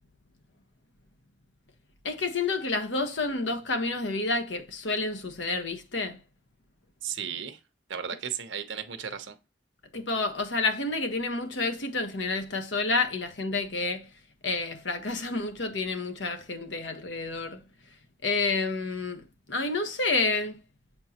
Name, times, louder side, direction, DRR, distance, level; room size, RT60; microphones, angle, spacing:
voice 1, 2.0-6.2 9.9-14.1 14.4-17.6 18.2-20.6, left 3 dB, 80° left, 1.2 m, -29 dB
voice 2, 7.0-7.6 7.9-9.4, right 8 dB, 80° right, 0.9 m, -35 dB
7.3 x 4.5 x 2.9 m
head